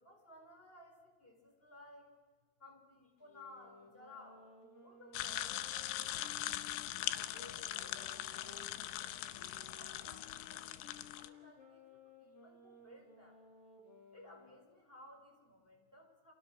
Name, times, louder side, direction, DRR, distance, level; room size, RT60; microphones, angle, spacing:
voice 1, 0.0-2.1 2.6-4.5 4.8-6.5 7.1-10.7 11.1-13.4 14.1-16.3, left 1 dB, 10° left, 2 dB, 4.7 m, -58 dB
sound 1, 3.2-8.7 9.3-14.5, left 4 dB, 35° left, 3.8 m, -59 dB
sound 2, 5.1-11.3, left 14 dB, 85° left, 3.3 m, -41 dB
29.5 x 27.0 x 6.4 m, 1.5 s
omnidirectional pair, 5.3 m